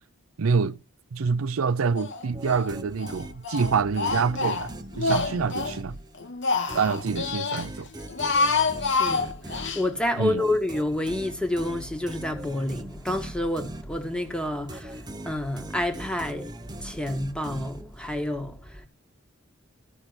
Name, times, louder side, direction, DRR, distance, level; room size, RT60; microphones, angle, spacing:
voice 1, 0.4-0.8 1.1-4.7 5.0-6.0 6.7-7.9 10.2-10.4, right 5 dB, 85° right, 0.5 m, -26 dB
Speech, 2.0-2.7 3.0-5.8 6.2-7.7 8.0-9.8, left 4 dB, 60° left, 1.4 m, -27 dB
sound 1, 2.3-6.3 6.7-14.3 14.7-18.2, right 1 dB, 20° right, 0.9 m, -40 dB
voice 2, 8.8-18.9, left 1 dB, 5° left, 1.6 m, -29 dB
13.5 x 6.0 x 8.0 m
head